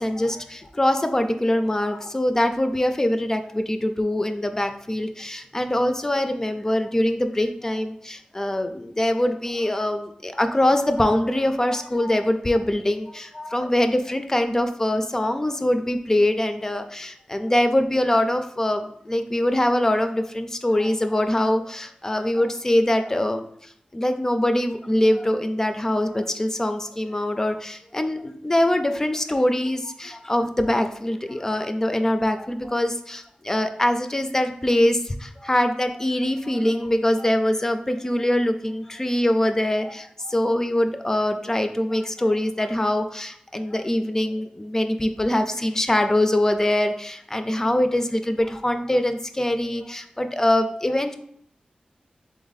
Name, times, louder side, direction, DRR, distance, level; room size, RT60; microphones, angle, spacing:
voice 1, 0.0-51.1, left 1 dB, 20° left, 7 dB, 0.3 m, -23 dB
3.7 x 3.5 x 3.9 m, 0.68 s
wide cardioid pair, 120°, 3 cm